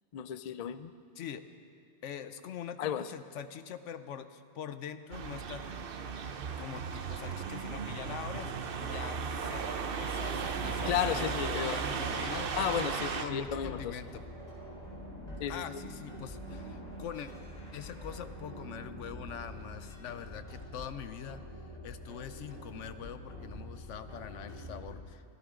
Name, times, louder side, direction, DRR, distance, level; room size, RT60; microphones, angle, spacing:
voice 1, 0.1-0.9 2.8-3.1 10.9-11.8 12.6-14.0 15.4-15.6, left 9 dB, 55° left, 12 dB, 0.4 m, -33 dB
voice 2, 2.0-5.6 6.6-9.7 10.0-12.5 13.2-14.2 15.5-17.3 17.7-21.4 21.8-25.2, left 8 dB, 75° left, 11 dB, 1.0 m, -43 dB
sound 1, 5.1-13.3, right 5 dB, 55° right, 0.9 m, -36 dB
sound 2, 10.4-24.9, equal, 35° left, 4.2 m, -45 dB
24.5 x 14.5 x 3.8 m, 2.4 s
omnidirectional pair, 1.3 m